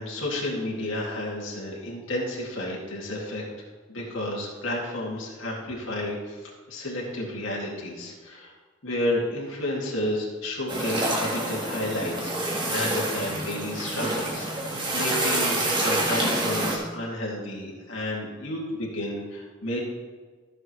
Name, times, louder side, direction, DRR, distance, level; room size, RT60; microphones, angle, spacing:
voice 1, 0.0-3.4 3.9-6.4 6.7-8.5 8.8-19.8, left 1 dB, 65° left, -3 dB, 2.4 m, -31 dB
sound 1, 10.7-16.8, right 1 dB, 20° right, 1.6 m, -27 dB
15.0 x 6.7 x 3.2 m, 1.5 s
head